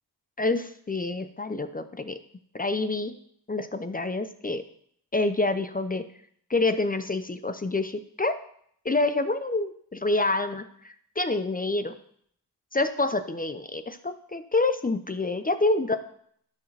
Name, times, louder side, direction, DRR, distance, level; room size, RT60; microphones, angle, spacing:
voice 1, 0.4-2.2 2.5-3.1 3.5-4.6 5.1-6.0 6.5-8.3 8.8-11.9 12.7-16.0, left 2 dB, 20° left, 10 dB, 0.6 m, -27 dB
13.0 x 4.6 x 3.3 m, 0.65 s
cardioid pair, 55°, 42 cm